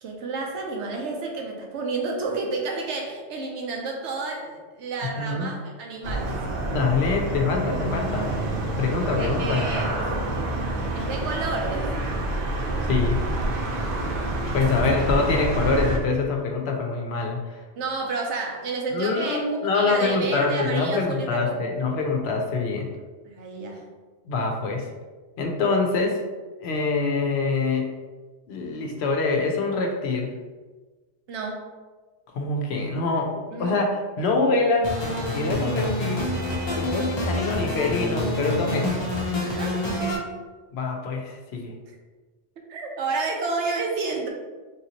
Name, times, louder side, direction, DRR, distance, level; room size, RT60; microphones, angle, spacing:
voice 1, 0.0-6.4 9.2-9.9 10.9-11.9 14.3-15.1 17.8-21.6 23.2-23.8 31.3-31.6 33.5-33.8 36.7-36.9 39.4-39.8 42.7-44.3, right 3 dB, 85° right, 1 dB, 1.0 m, -30 dB
voice 2, 5.0-5.5 6.7-9.6 12.9-13.2 14.5-17.6 18.9-22.9 24.3-24.9 25.4-26.2 26.6-27.9 28.5-30.3 32.3-34.9 35.3-36.2 36.7-39.1 40.7-41.7, left 3 dB, 70° left, 1 dB, 0.8 m, -25 dB
sound 1, 6.0-16.0, right 1 dB, 60° right, 0.6 m, -27 dB
sound 2, 34.8-40.2, left 1 dB, 30° left, 0.6 m, -27 dB
3.5 x 2.7 x 2.8 m, 1.3 s
omnidirectional pair, 1.2 m